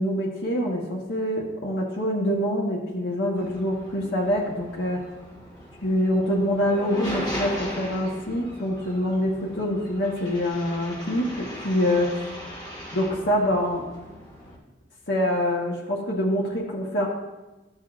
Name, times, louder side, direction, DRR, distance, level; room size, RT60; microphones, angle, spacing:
voice 1, 0.0-5.0 5.8-12.1 12.9-13.8 15.1-17.1, equal, 80° left, -3 dB, 1.1 m, -25 dB
sound 1, 3.4-14.6, equal, 25° left, 1.6 m, -38 dB
13.0 x 6.6 x 2.5 m, 1.1 s
head